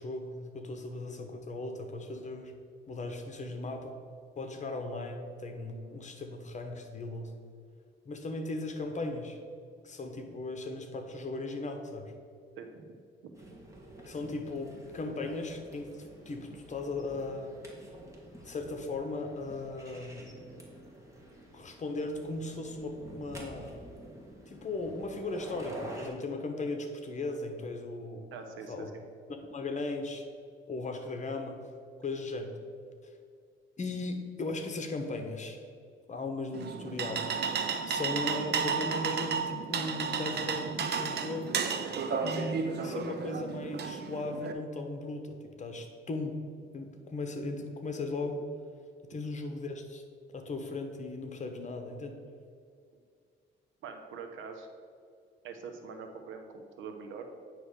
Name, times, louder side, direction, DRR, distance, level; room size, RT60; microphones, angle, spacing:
voice 1, 0.0-2.5 2.9-4.0 4.4-7.3 8.0-9.4 9.8-12.1 14.0-15.9 16.3-17.6 18.4-20.4 21.5-23.8 24.5-28.2 28.7-28.9 29.5-30.2 30.7-31.6 32.0-32.5 33.8-35.6 36.1-37.2 37.9-41.6 42.2-46.4 46.7-48.4 49.0-50.0 50.3-52.2, left 2 dB, 35° left, 5 dB, 1.1 m, -37 dB
voice 2, 12.6-13.0 28.3-29.0 53.8-54.7 55.4-57.3, right 5 dB, 85° right, 4 dB, 1.0 m, -44 dB
sound 1, 13.3-26.1, right 1 dB, 15° right, 1.9 m, -49 dB
sound 2, 36.5-44.5, right 6 dB, 55° right, 0.7 m, -33 dB
9.3 x 3.2 x 6.7 m, 2.2 s
cardioid pair, 90°, 20 cm